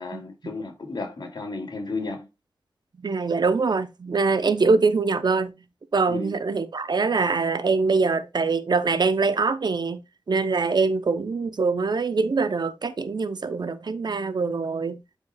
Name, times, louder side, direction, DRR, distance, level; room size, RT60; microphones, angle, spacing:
voice 1, 0.0-2.3 6.1-6.4, left 3 dB, 60° left, 2.9 m, -33 dB
voice 2, 3.0-5.5 5.9-10.0 10.3-15.0, right 4 dB, 60° right, 0.9 m, -23 dB
12.0 x 4.7 x 2.4 m
wide cardioid pair, 80°, 8 cm